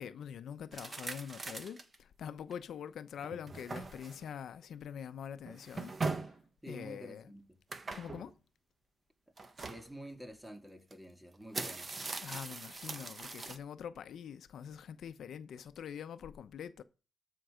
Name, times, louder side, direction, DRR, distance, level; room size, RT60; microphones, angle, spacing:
voice 1, 0.0-6.3 6.7-7.3 7.9-8.4 12.2-16.8, left 8 dB, 85° left, 0.9 m, -45 dB
sound 1, 0.7-1.9 2.5-2.6 3.2-4.3 5.5-6.4 7.7-8.3 9.4-9.9 10.9-11.0 11.3-13.6, right 3 dB, 40° right, 1.5 m, -41 dB
voice 2, 6.6-7.6 9.6-11.9, right 1 dB, 10° right, 2.4 m, -49 dB
13.5 x 5.6 x 5.0 m
cardioid pair, 90°, 0 cm